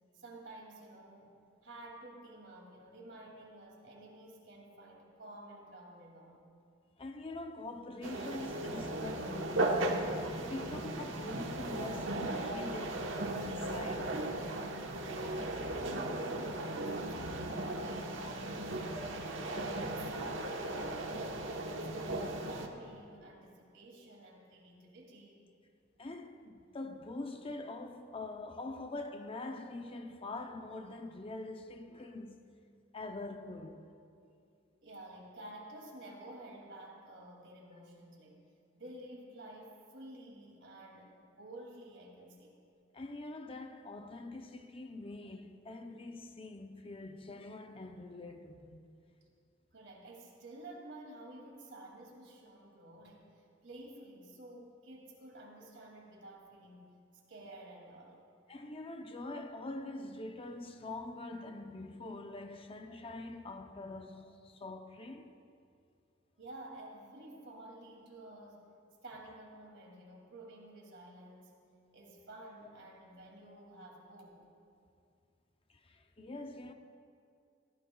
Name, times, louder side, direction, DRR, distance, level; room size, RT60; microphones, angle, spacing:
voice 1, 0.1-6.4 15.8-19.2 19.5-21.0 21.4-25.4 34.8-38.4 38.7-42.5 49.7-53.3 53.6-56.9 57.3-58.2 66.4-68.6 69.0-71.6 71.9-74.4, right 1 dB, 65° right, 2.7 m, -51 dB
voice 2, 7.0-10.1 10.4-14.9 26.0-32.6 32.9-34.0 42.9-48.8 58.5-65.4 75.7-76.7, left 2 dB, 30° left, 0.6 m, -44 dB
sound 1, 8.0-22.7, right 1 dB, 85° right, 1.2 m, -36 dB
22.5 x 15.0 x 2.3 m
head